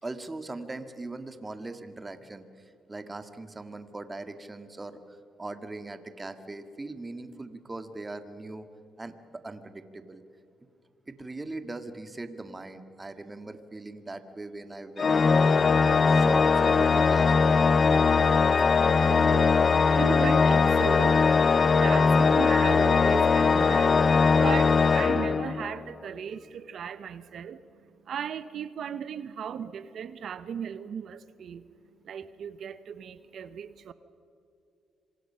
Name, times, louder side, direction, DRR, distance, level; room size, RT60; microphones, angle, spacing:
voice 1, 0.0-8.7 9.0-9.1 9.4-10.2 11.1-17.6, right 2 dB, 20° right, 9 dB, 1.9 m, -40 dB
Organ, 15.0-25.9, left 5 dB, 40° left, 0.7 m, -21 dB
voice 2, 18.6-31.6 32.0-33.9, right 8 dB, 60° right, 13 dB, 1.0 m, -37 dB
26.5 x 24.5 x 5.7 m, 2.7 s
cardioid pair, 90°, 0 cm